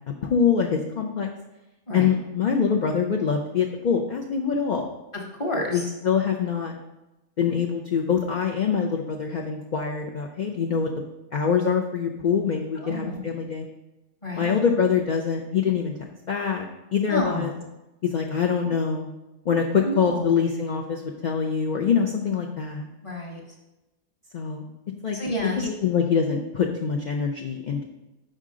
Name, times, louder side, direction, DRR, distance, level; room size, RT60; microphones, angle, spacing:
voice 1, 0.2-1.3 1.9-4.9 5.7-6.7 7.4-10.9 11.3-13.7 14.4-15.9 16.3-16.7 16.9-17.5 18.0-19.0 19.5-22.9 24.3-24.6 25.0-25.2 25.6-27.8, left 6 dB, 70° left, 1 dB, 0.4 m, -24 dB
voice 2, 1.9-2.2 5.1-5.9 12.7-13.2 14.2-14.5 17.1-17.5 19.8-20.3 23.0-23.4 25.1-25.7, equal, 25° left, -1 dB, 0.9 m, -30 dB
6.6 x 5.0 x 3.7 m, 0.99 s
omnidirectional pair, 1.5 m